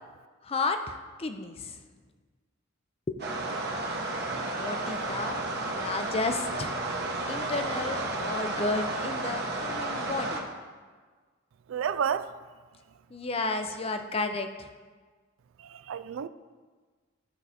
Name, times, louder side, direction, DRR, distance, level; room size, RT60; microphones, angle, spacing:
voice 1, 0.4-1.8 3.1-3.2 4.6-5.4 5.7-6.7 7.3-10.4 13.1-14.7, left 3 dB, 30° left, 0.5 m, -32 dB
sound 1, 3.2-10.4, right 2 dB, 55° right, 1.1 m, -32 dB
voice 2, 11.7-12.3 15.6-16.3, right 7 dB, 75° right, 0.3 m, -30 dB
13.0 x 4.8 x 4.2 m
head